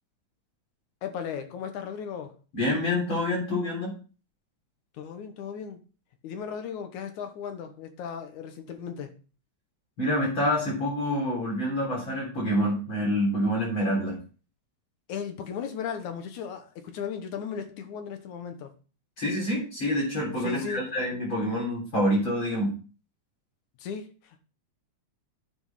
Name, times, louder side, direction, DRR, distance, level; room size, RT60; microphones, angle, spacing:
voice 1, 1.0-2.3 4.9-5.8 6.2-9.1 15.1-18.7 20.4-20.9 21.1-21.2 23.8-24.4, left 7 dB, 75° left, 7 dB, 2.5 m, -36 dB
voice 2, 2.5-3.9 10.0-14.2 19.2-22.7, equal, 40° left, -3 dB, 4.2 m, -27 dB
9.7 x 6.1 x 4.8 m, 0.36 s
omnidirectional pair, 3.5 m